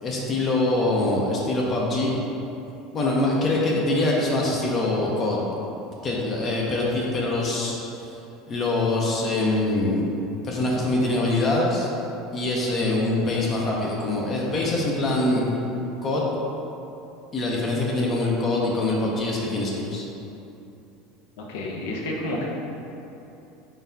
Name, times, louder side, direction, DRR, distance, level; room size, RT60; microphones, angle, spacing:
voice 1, 0.0-2.2 2.9-5.5 6.0-8.1 8.5-10.1 10.4-11.9 12.3-15.4 16.0-16.3 17.3-20.1, left 2 dB, 35° left, -3 dB, 0.6 m, -24 dB
voice 2, 21.4-22.5, left 1 dB, 80° left, -2 dB, 0.6 m, -30 dB
3.8 x 3.5 x 2.7 m, 2.9 s
supercardioid pair, 110°, 0 cm